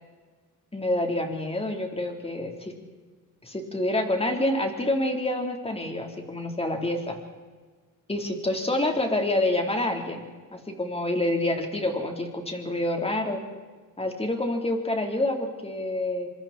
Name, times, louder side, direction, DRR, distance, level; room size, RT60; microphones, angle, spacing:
voice 1, 0.7-2.7 3.4-7.2 8.1-10.3 10.5-13.4 14.0-16.3, left 1 dB, 15° left, 3 dB, 4.1 m, -27 dB
26.0 x 25.0 x 4.5 m, 1.4 s
cardioid pair, 105°, 34 cm